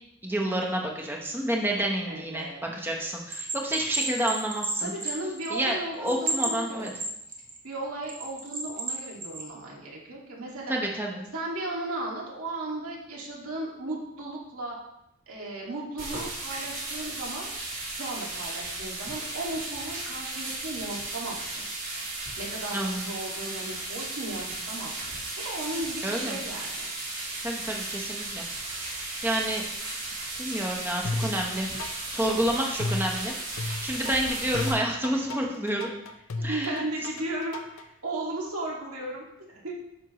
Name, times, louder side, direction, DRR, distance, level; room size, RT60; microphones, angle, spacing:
voice 1, 0.2-4.9 5.5-6.9 10.7-11.2 22.7-23.0 26.0-26.4 27.4-28.4 28.7-29.6 30.4-31.8 32.0-35.9 36.4-36.8, right 1 dB, 10° right, 0 dB, 0.9 m, -29 dB
voice 2, 2.1-2.6 4.8-6.9 7.6-10.7 11.3-14.8 15.3-17.5 17.9-21.6 22.4-25.2 25.4-26.9 32.2-32.3 35.1-35.4 36.4-39.7, right 2 dB, 80° right, -3 dB, 1.9 m, -36 dB
Bell, 3.3-5.7 6.1-7.6 8.1-9.5, right 3 dB, 40° right, 1.2 m, -32 dB
sound 1, 16.0-34.7, right 2 dB, 60° right, 3.0 m, -35 dB
sound 2, 31.0-37.9, left 2 dB, 70° left, 0.6 m, -34 dB
9.7 x 6.0 x 3.0 m, 0.85 s
head